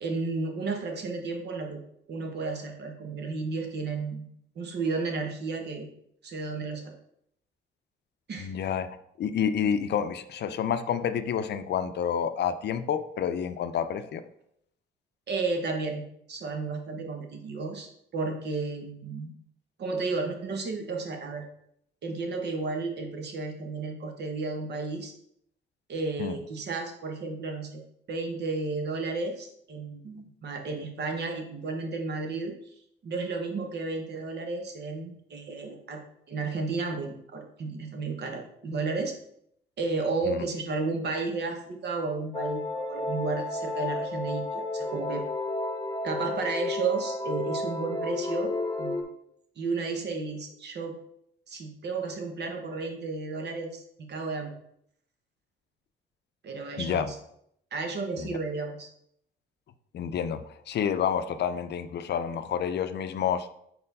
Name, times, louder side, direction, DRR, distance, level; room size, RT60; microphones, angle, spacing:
voice 1, 0.0-1.8 2.1-4.3 4.5-5.9 6.2-6.9 8.3-8.5 15.3-16.0 16.3-19.3 19.8-21.5 22.0-25.1 25.9-27.8 28.1-32.5 33.0-36.0 36.3-39.1 39.8-45.2 46.0-48.5 48.8-49.1 49.6-51.0 51.5-53.8 54.1-54.5 56.4-57.2 57.7-58.9, right 3 dB, 60° right, 4 dB, 1.2 m, -32 dB
voice 2, 8.4-14.2 26.2-26.4 40.3-40.4 56.8-57.1 58.2-58.3 59.9-63.5, left 8 dB, 60° left, 11 dB, 0.5 m, -29 dB
sound 1, 42.3-49.0, left 2 dB, 20° left, 1.1 m, -32 dB
4.4 x 4.4 x 5.4 m, 0.72 s
cardioid pair, 90°, 20 cm